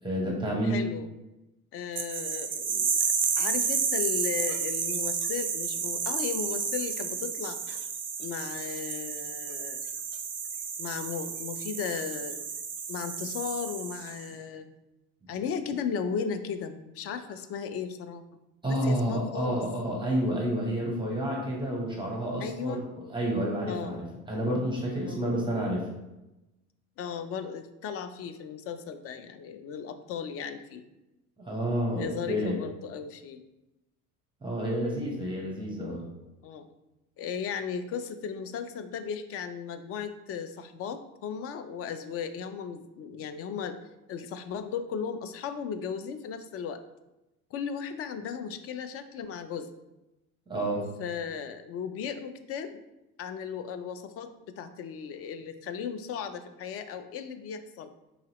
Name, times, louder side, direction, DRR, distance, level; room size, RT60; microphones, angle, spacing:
voice 1, 0.0-0.8 15.2-15.3 18.6-22.8 23.1-25.9 31.4-32.6 34.4-36.0 50.5-50.8, right 1 dB, 10° right, -3 dB, 1.0 m, -29 dB
voice 2, 0.6-1.1 1.7-2.9 3.4-7.6 8.2-9.8 10.8-12.4 12.9-14.7 15.3-18.2 18.7-19.6 22.4-22.8 23.7-23.9 25.0-25.2 27.0-30.8 32.0-33.4 36.4-36.7 37.2-43.8 44.1-46.8 47.5-49.7 51.0-52.8 53.2-57.9, left 7 dB, 35° left, 10 dB, 0.4 m, -36 dB
sound 1, 2.0-14.3, right 6 dB, 30° right, 0.6 m, -31 dB
3.9 x 2.8 x 2.9 m, 0.98 s
hypercardioid pair, 70°, 41 cm